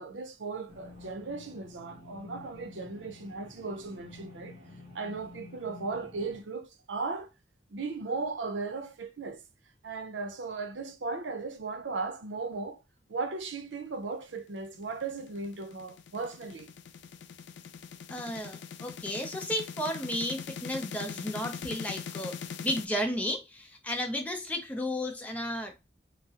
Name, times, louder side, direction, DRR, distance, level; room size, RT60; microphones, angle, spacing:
voice 1, 0.0-4.6 4.9-7.3 7.7-9.4 9.8-12.8 13.1-16.7, right 4 dB, 80° right, 0.6 m, -37 dB
sound 1, 0.7-6.4, left 2 dB, 30° right, 0.9 m, -50 dB
sound 2, 14.8-22.9, left 7 dB, 70° left, 0.3 m, -42 dB
voice 2, 18.1-25.9, equal, 10° left, 0.5 m, -33 dB
3.6 x 2.0 x 2.7 m
head